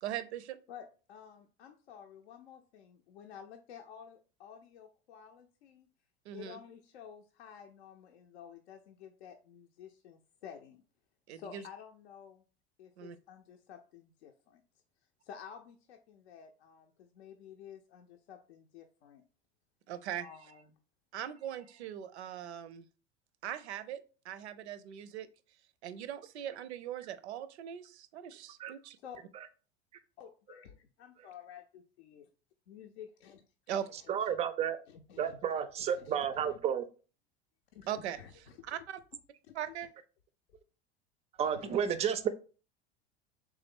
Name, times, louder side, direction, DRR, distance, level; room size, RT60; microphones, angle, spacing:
voice 1, 0.0-0.6 6.3-6.6 11.3-11.7 13.0-13.2 19.9-20.3 21.1-22.8 23.4-25.3 25.8-29.0 33.7-33.9 37.9-39.0 39.5-39.9, right 10 dB, 75° right, 0.5 m, -40 dB
voice 2, 0.7-5.9 6.3-10.8 11.3-12.4 12.8-14.6 15.3-19.2 20.2-20.6 29.0-29.2 30.2-32.3 32.7-33.4 34.3-34.4 34.9-35.4 35.9-36.6 37.7-37.9 38.2-38.3 41.5-42.0, left 8 dB, 70° left, 0.5 m, -52 dB
voice 3, 34.1-34.8 35.2-36.9 41.4-42.3, right 8 dB, 20° right, 0.3 m, -31 dB
3.4 x 3.2 x 3.5 m
figure-of-eight pair, 80°, 34 cm